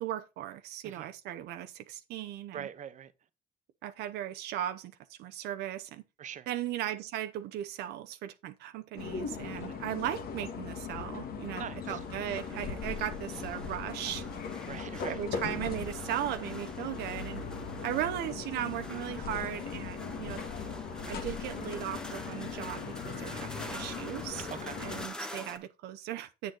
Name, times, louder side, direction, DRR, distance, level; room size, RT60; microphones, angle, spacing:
voice 1, 0.0-2.7 3.8-6.0 6.5-14.2 15.1-17.4 17.8-20.4 21.1-24.5 24.8-26.5, right 12 dB, 85° right, 0.8 m, -37 dB
voice 2, 2.5-3.1 6.2-6.5 9.5-9.8 11.6-12.0 12.9-13.0 14.7-15.2 24.5-24.8, right 9 dB, 45° right, 1.0 m, -43 dB
sound 1, 9.0-25.1, left 6 dB, 65° left, 1.6 m, -39 dB
sound 2, 11.8-25.6, left 1 dB, 5° left, 1.3 m, -47 dB
8.5 x 6.6 x 3.8 m
cardioid pair, 110°, 17 cm